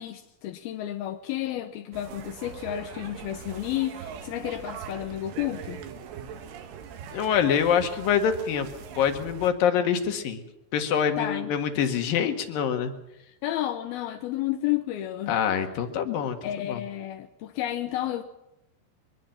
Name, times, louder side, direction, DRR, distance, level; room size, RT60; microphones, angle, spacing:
voice 1, 0.0-5.8 11.2-11.5 13.4-15.4 16.4-18.2, left 13 dB, 75° left, 2.4 m, -31 dB
sound 1, 1.9-9.5, right 7 dB, 90° right, 4.3 m, -41 dB
voice 2, 7.1-8.7 9.0-10.4 10.7-12.9 15.3-16.8, left 8 dB, 60° left, 3.0 m, -25 dB
24.0 x 21.0 x 5.9 m
omnidirectional pair, 5.4 m